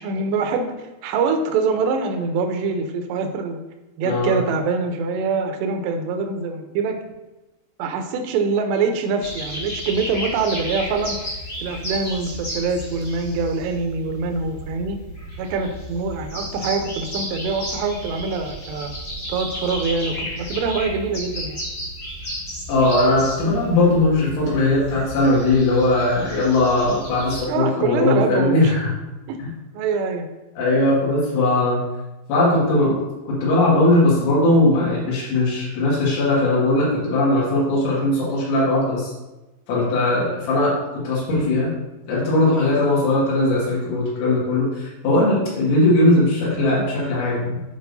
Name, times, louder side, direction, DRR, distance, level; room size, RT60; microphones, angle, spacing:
voice 1, 0.0-3.6 4.0-7.0 7.8-11.2 11.6-15.0 15.4-18.9 19.3-21.6 27.5-28.8 29.3-29.4 29.7-30.3, right 4 dB, 80° right, 5 dB, 2.7 m, -24 dB
voice 2, 4.1-4.4 22.7-28.9 29.4-29.5 30.6-31.8 32.3-33.0 33.3-39.1 39.7-41.7 42.1-47.6, left 2 dB, 80° left, -7 dB, 4.4 m, -19 dB
sound 1, 9.2-27.4, equal, 40° left, 1.4 m, -33 dB
12.5 x 4.9 x 2.7 m, 1.0 s
omnidirectional pair, 5.4 m